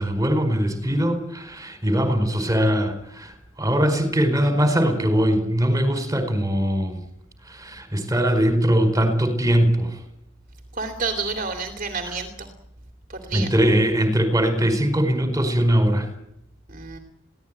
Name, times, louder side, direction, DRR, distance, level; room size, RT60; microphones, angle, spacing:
voice 1, 0.0-7.0 7.4-10.0 12.0-12.1 13.3-16.1, equal, 15° right, 8 dB, 4.9 m, -21 dB
voice 2, 10.8-12.5 13.2-13.5 16.7-17.0, right 4 dB, 45° right, 6 dB, 2.8 m, -29 dB
22.5 x 17.0 x 9.1 m, 0.75 s
head